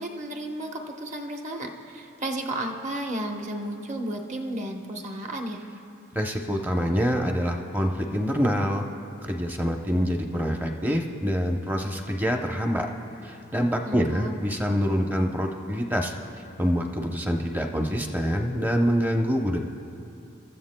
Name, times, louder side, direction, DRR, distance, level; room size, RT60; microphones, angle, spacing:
voice 1, 0.0-5.6 13.8-14.3, right 1 dB, 35° right, 2 dB, 0.9 m, -33 dB
voice 2, 6.1-8.8 9.2-12.9 13.2-16.1 16.6-19.6, equal, 10° right, 2 dB, 0.7 m, -26 dB
29.0 x 13.5 x 2.2 m, 2.7 s
head